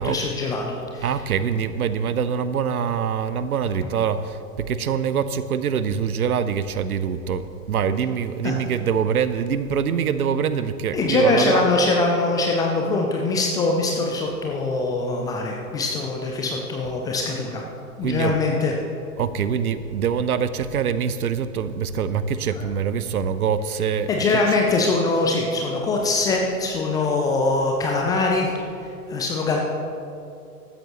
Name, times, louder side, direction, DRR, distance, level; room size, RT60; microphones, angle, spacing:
voice 1, 0.0-1.1 8.4-8.6 10.9-17.6 18.0-18.7 22.5-22.7 24.1-28.5 29.1-29.6, left 3 dB, 10° left, 0 dB, 0.4 m, -22 dB
voice 2, 1.0-11.7 18.0-18.4 19.2-24.4, right 7 dB, 70° right, 13 dB, 0.8 m, -24 dB
15.0 x 12.5 x 3.0 m, 2.5 s
figure-of-eight pair, 100°, 46 cm